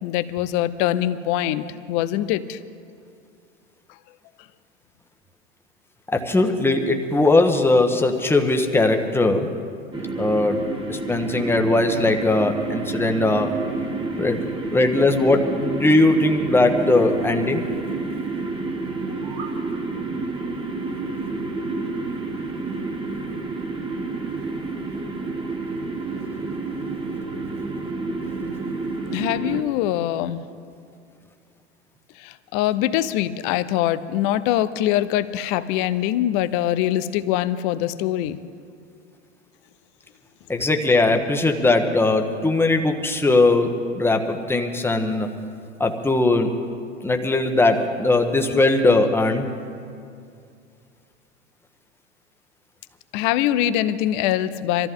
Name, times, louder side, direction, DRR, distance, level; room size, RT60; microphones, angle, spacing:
voice 1, 0.0-2.6 29.1-30.4 32.2-38.4 53.1-54.9, left 12 dB, 45° left, 14 dB, 0.8 m, -23 dB
voice 2, 6.1-9.5 10.2-10.6 10.9-13.6 14.2-14.4 14.7-17.6 40.5-45.3 45.8-46.5 47.0-49.5, left 2 dB, 5° left, 4 dB, 1.4 m, -19 dB
sound 1, 9.9-29.6, right 3 dB, 15° right, 1.6 m, -29 dB
sound 2, 18.9-19.6, right 6 dB, 50° right, 2.7 m, -40 dB
25.0 x 14.0 x 3.9 m, 2.4 s
figure-of-eight pair, 90°, 35 cm